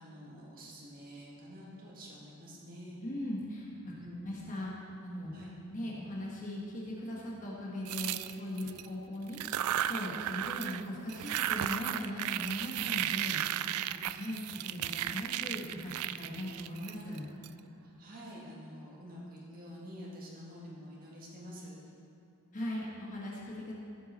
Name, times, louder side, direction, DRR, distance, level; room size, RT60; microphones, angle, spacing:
voice 1, 0.0-3.0 4.0-4.3 5.3-5.5 8.7-8.8 13.8-14.0 17.8-21.8, equal, 40° right, -6 dB, 1.8 m, -48 dB
voice 2, 3.0-3.9 4.2-4.7 5.0-5.3 5.7-13.4 14.1-17.3 22.5-23.7, left 1 dB, 35° left, -5 dB, 1.4 m, -39 dB
sound 1, 7.9-8.9 9.3-10.8 11.1-17.5, right 12 dB, 85° right, 0.3 m, -35 dB
15.0 x 5.9 x 4.2 m, 2.8 s
head